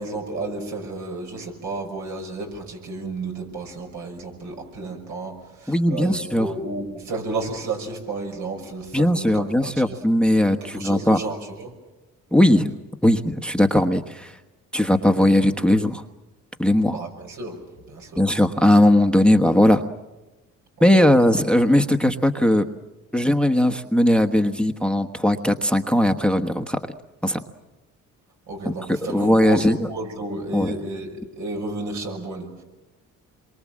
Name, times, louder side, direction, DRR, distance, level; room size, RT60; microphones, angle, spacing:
voice 1, 0.0-10.0 10.6-11.7 16.8-17.6 17.9-18.3 20.8-21.2 28.5-32.6, right 3 dB, 75° right, 3 dB, 6.2 m, -32 dB
voice 2, 5.7-6.5 8.9-11.2 12.3-12.8 13.0-14.4 14.7-16.0 16.6-17.0 18.2-19.8 20.8-22.7 23.1-26.8 27.2-27.4 28.6-28.7 29.1-29.8 30.5-30.7, left 1 dB, 5° left, 5 dB, 1.2 m, -18 dB
27.5 x 23.5 x 7.5 m, 1.1 s
cardioid pair, 90°, 30 cm